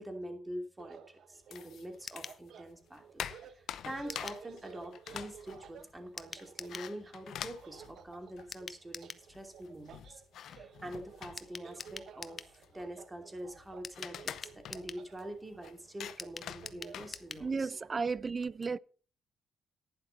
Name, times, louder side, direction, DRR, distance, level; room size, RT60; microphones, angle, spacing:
voice 1, 0.0-3.2 3.5-17.7, right 1 dB, 15° right, 2.9 m, -45 dB
sound 1, 0.8-18.0, right 8 dB, 65° right, 1.0 m, -55 dB
sound 2, 1.5-2.5 2.8-8.7 9.0-9.1 9.3-17.7, left 10 dB, 70° left, 0.7 m, -46 dB
sound 3, 2.1-2.4 4.1-4.4 6.2-6.9 8.5-9.3 11.4-12.5 13.8-15.1 16.2-17.5 17.8-17.9 18.1-18.2, left 4 dB, 30° left, 0.9 m, -45 dB
voice 2, 17.4-18.8, right 4 dB, 35° right, 0.4 m, -33 dB
11.5 x 10.0 x 4.1 m
cardioid pair, 90°, 0 cm